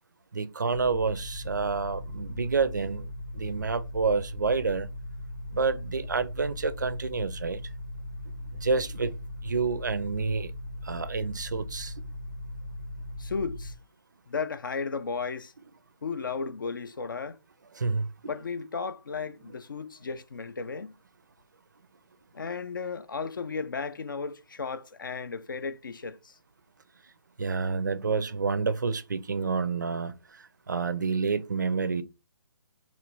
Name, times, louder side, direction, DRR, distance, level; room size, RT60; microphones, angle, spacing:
voice 1, 0.3-3.1 3.3-4.9 5.5-7.6 8.5-9.2 9.4-10.5 10.8-11.9 17.8-18.3 27.4-32.0, right 4 dB, 45° right, 0.4 m, -29 dB
sound 1, 0.7-13.7, left 1 dB, 80° left, 1.1 m, -39 dB
voice 2, 13.2-13.7 14.3-15.5 16.0-17.4 18.2-21.0 22.3-26.4, left 5 dB, 50° left, 0.4 m, -34 dB
3.0 x 3.0 x 4.6 m
hypercardioid pair, 180°, 14 cm